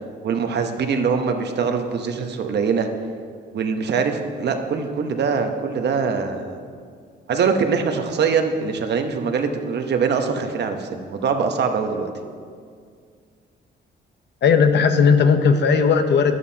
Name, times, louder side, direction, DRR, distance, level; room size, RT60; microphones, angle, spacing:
voice 1, 0.2-2.9 3.5-6.6 7.3-12.1, right 5 dB, 60° right, 6 dB, 1.0 m, -23 dB
voice 2, 14.4-16.4, left 5 dB, 60° left, 7 dB, 0.9 m, -16 dB
12.5 x 11.0 x 2.9 m, 2.1 s
cardioid pair, 90°, 20 cm